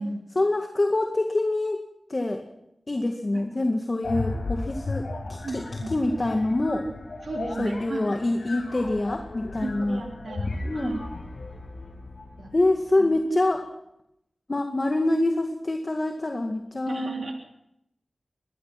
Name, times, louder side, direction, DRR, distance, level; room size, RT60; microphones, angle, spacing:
voice 1, 0.4-1.8 2.1-2.4 2.9-6.9 7.6-10.0 10.6-10.9 12.5-13.6 14.5-17.1, left 2 dB, 45° left, 4 dB, 2.1 m, -25 dB
sound 1, 4.0-12.8, left 3 dB, 80° left, 5.0 m, -35 dB
voice 2, 5.4-5.9 6.8-6.9 7.2-8.1 9.6-11.0 12.4-12.5 13.0-13.4 15.1-15.4 16.8-17.3, right 3 dB, 90° right, 1 dB, 3.2 m, -33 dB
23.5 x 19.5 x 6.0 m, 0.82 s
wide cardioid pair, 55°, 0 cm